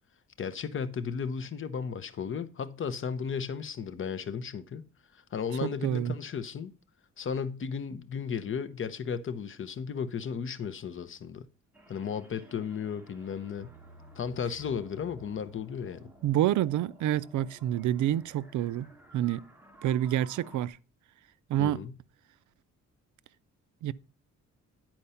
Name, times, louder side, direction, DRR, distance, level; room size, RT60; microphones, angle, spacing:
voice 1, 0.4-4.9 5.1-6.7 7.2-11.5 11.9-13.7 14.2-16.1 21.6-22.0, left 6 dB, 45° left, 0.7 m, -35 dB
voice 2, 5.6-6.1 16.2-19.5 19.8-20.8 21.5-21.8 23.8-23.9, right 12 dB, 80° right, 0.4 m, -28 dB
sound 1, 11.7-20.7, right 1 dB, 5° right, 1.4 m, -56 dB
sound 2, 13.5-18.1, right 4 dB, 35° right, 3.0 m, -57 dB
10.0 x 4.4 x 5.6 m
wide cardioid pair, 150°, 30 cm